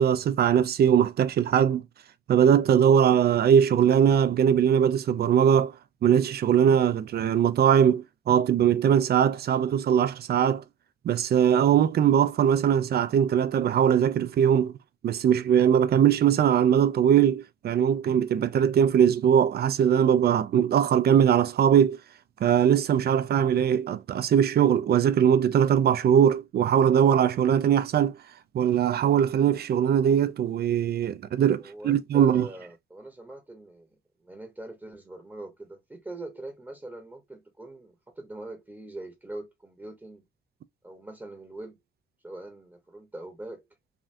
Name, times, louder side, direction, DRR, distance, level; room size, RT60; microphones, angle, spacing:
voice 1, 0.0-1.8 2.3-5.7 6.0-10.6 11.0-14.7 15.0-22.0 22.4-28.2 28.5-32.5, right 9 dB, 55° right, 0.5 m, -21 dB
voice 2, 31.4-40.3 40.8-41.8 42.2-43.6, right 2 dB, 10° right, 1.0 m, -42 dB
3.4 x 2.4 x 2.6 m
cardioid pair, 90°, 20 cm